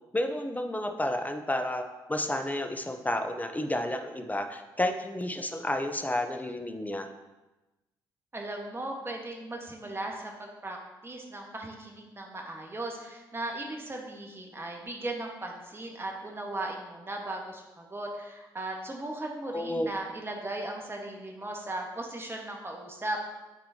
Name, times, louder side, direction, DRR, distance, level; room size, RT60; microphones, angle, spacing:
voice 1, 0.1-1.8 2.1-7.1 19.5-19.9, left 1 dB, 15° left, 5 dB, 0.9 m, -31 dB
voice 2, 8.3-10.8 11.0-23.2, right 2 dB, 20° right, 0 dB, 1.6 m, -37 dB
11.0 x 4.3 x 2.8 m, 1.1 s
hypercardioid pair, 40°, 11 cm